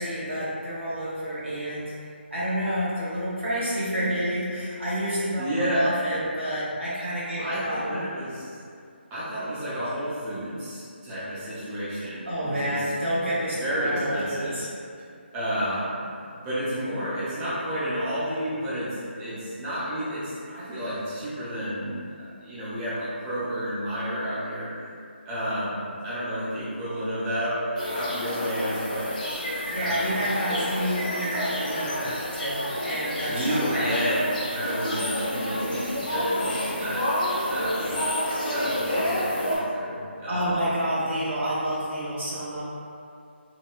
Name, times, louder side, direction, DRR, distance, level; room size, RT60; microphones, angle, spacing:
voice 1, 0.0-1.9 2.3-8.0 12.3-14.7 29.7-33.9 40.3-42.6, equal, 80° right, -8 dB, 1.0 m, -29 dB
voice 2, 5.4-5.9 7.4-8.5 9.1-12.9 13.6-14.6 15.3-16.0 16.3-24.7 25.2-29.1 29.7-30.8 31.2-31.4 33.3-40.5, equal, 15° right, -13 dB, 0.5 m, -31 dB
sound 1, 27.8-39.6, left 1 dB, 40° left, 0.7 m, -29 dB
3.0 x 2.1 x 2.3 m, 2.4 s
figure-of-eight pair, 160°, 6 cm